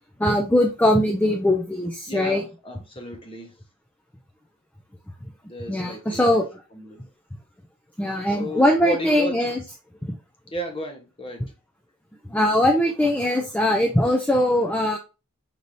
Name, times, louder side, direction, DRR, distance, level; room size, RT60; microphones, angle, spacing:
voice 1, 0.2-2.4 5.7-6.5 8.0-9.6 10.1-10.2 12.3-15.0, left 1 dB, 5° left, 2 dB, 0.4 m, -21 dB
voice 2, 2.1-3.5 5.5-6.4 6.7-7.1 8.3-9.5 10.5-11.4, right 1 dB, 25° left, 3 dB, 1.0 m, -33 dB
5.2 x 2.7 x 3.1 m, 0.30 s
head